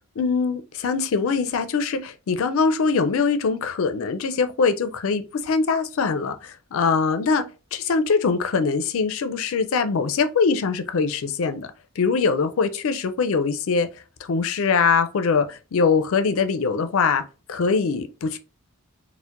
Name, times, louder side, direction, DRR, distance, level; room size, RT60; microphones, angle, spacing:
voice 1, 0.2-7.5 7.7-11.7 12.0-13.9 14.2-17.2 17.5-18.4, left 5 dB, 70° left, 0.4 m, -22 dB
4.4 x 2.1 x 2.4 m
head